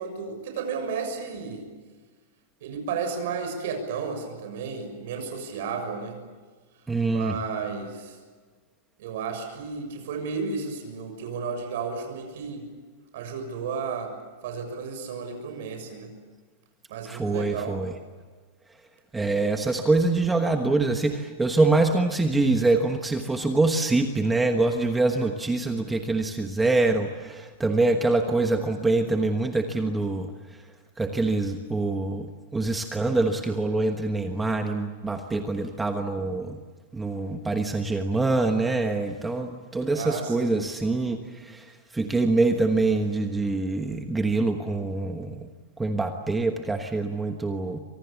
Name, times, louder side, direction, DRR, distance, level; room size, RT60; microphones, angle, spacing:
voice 1, 0.0-1.7 2.6-6.2 7.1-8.2 9.0-12.7 13.1-14.1 14.4-16.1 16.9-17.8 39.9-40.6, right 5 dB, 55° right, 5 dB, 6.8 m, -33 dB
voice 2, 6.9-7.3 17.0-17.9 19.1-30.3 31.0-36.6 36.9-41.6 41.9-45.5 45.8-47.8, right 3 dB, 5° right, 4 dB, 1.2 m, -25 dB
29.5 x 26.0 x 7.2 m, 1.4 s
supercardioid pair, 175°, 0 cm